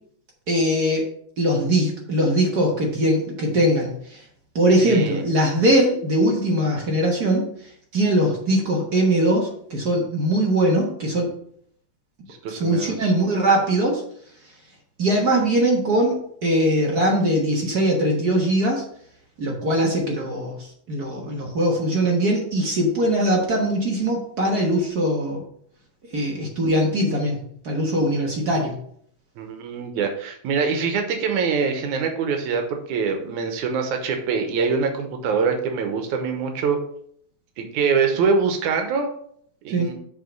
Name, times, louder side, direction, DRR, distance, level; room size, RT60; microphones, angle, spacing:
voice 1, 0.5-1.0 1.4-4.2 4.5-7.5 7.9-11.3 12.5-14.0 15.0-18.8 19.4-20.6 20.9-25.4 26.1-28.8 39.7-39.9, right 1 dB, 50° right, -1 dB, 1.2 m, -21 dB
voice 2, 4.8-5.2 12.3-13.1 29.4-36.8 37.6-39.1 39.6-39.9, right 5 dB, 85° right, 4 dB, 2.4 m, -24 dB
6.7 x 4.8 x 5.1 m, 0.65 s
omnidirectional pair, 3.3 m